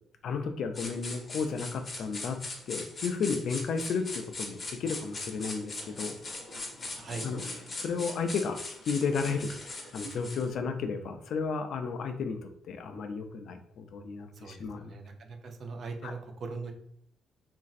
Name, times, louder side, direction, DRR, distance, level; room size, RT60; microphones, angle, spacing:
voice 1, 0.2-2.4 2.7-6.2 7.2-15.0 16.0-16.2, left 5 dB, 70° left, 7 dB, 0.4 m, -33 dB
sound 1, 0.7-10.5, left 2 dB, 40° left, 0.7 m, -40 dB
voice 2, 14.4-16.7, right 4 dB, 55° right, 4 dB, 0.5 m, -40 dB
3.0 x 2.5 x 2.5 m, 0.72 s
cardioid pair, 90°, 0 cm